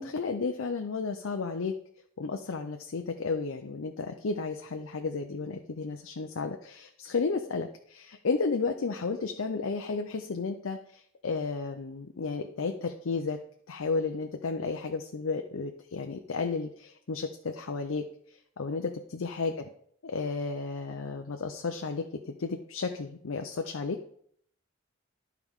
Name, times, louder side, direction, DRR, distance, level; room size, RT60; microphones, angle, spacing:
voice 1, 0.0-1.7 2.2-13.4 13.7-19.5 20.0-24.0, left 4 dB, 85° left, 4 dB, 0.6 m, -33 dB
12.0 x 4.7 x 3.6 m, 0.65 s
head